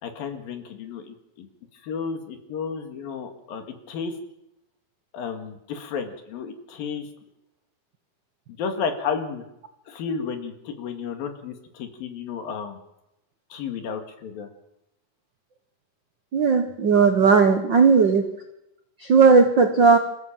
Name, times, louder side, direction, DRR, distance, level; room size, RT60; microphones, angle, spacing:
voice 1, 0.0-1.5 1.8-4.2 5.1-7.1 8.6-9.4 9.9-12.8 13.5-14.5, left 6 dB, 80° left, 6 dB, 3.9 m, -32 dB
voice 2, 16.3-18.3 19.0-20.0, right 5 dB, 85° right, 7 dB, 1.0 m, -16 dB
26.5 x 16.0 x 7.6 m, 0.88 s
omnidirectional pair, 4.0 m